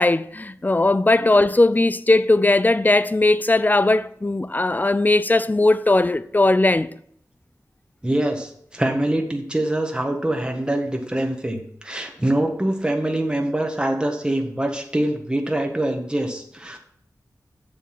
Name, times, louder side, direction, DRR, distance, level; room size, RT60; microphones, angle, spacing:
voice 1, 0.0-6.9, left 2 dB, 25° left, 0.5 m, -18 dB
voice 2, 8.0-16.8, right 1 dB, 15° right, 1.5 m, -24 dB
7.5 x 7.1 x 5.9 m
wide cardioid pair, 55°, 7 cm